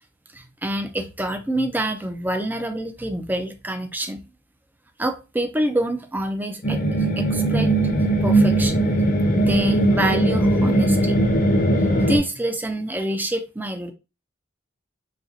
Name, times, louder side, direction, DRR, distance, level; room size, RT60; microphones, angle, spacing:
voice 1, 0.3-4.2 5.0-7.7 8.2-8.8 9.4-11.2 11.4-11.5 12.0-13.9, right 1 dB, 10° right, 0.4 m, -27 dB
sound 1, 6.6-12.2, right 1 dB, 45° left, 0.7 m, -19 dB
4.1 x 2.9 x 2.5 m
head